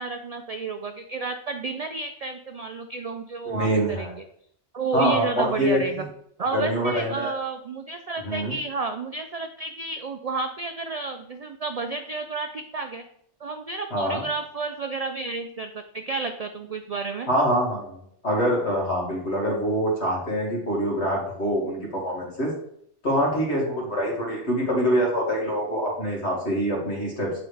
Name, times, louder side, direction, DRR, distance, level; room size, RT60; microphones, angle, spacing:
voice 1, 0.0-4.2 4.7-6.1 6.4-13.0 13.4-17.3, right 4 dB, 65° right, 7 dB, 0.3 m, -31 dB
voice 2, 3.5-4.1 4.9-5.8 6.5-7.3 8.2-8.5 13.9-14.2 17.3-22.5 23.0-27.4, equal, 70° left, -3 dB, 2.2 m, -25 dB
8.5 x 4.0 x 3.3 m, 0.68 s
omnidirectional pair, 1.2 m